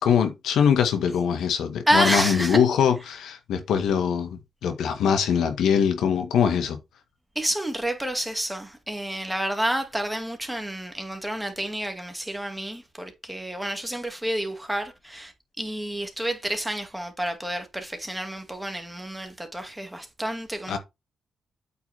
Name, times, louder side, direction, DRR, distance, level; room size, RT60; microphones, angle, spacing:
voice 1, 0.0-6.8 20.7-20.8, left 7 dB, 90° left, 1.7 m, -22 dB
voice 2, 1.9-2.6 7.4-20.8, right 1 dB, 5° right, 2.4 m, -29 dB
8.5 x 5.9 x 3.6 m
cardioid pair, 100°, 0 cm